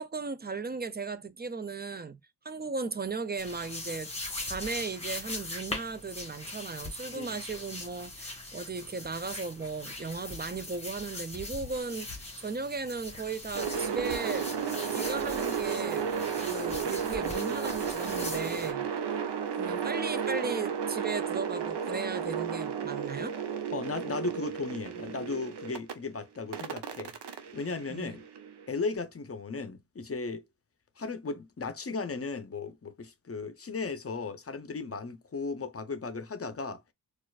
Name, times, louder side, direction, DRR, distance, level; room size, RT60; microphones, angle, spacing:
voice 1, 0.0-2.2 2.4-4.1 4.4-14.5 14.9-18.9 19.6-23.4 27.9-28.2, right 4 dB, 25° right, 0.4 m, -36 dB
sound 1, 3.4-18.7, left 2 dB, 15° left, 1.5 m, -41 dB
sound 2, 13.5-25.9 26.5-28.6, right 7 dB, 85° right, 0.8 m, -33 dB
voice 2, 23.7-27.1 27.5-28.2 28.7-30.4 31.0-36.8, left 4 dB, 35° left, 0.6 m, -36 dB
4.3 x 2.5 x 2.3 m
wide cardioid pair, 95°, 40 cm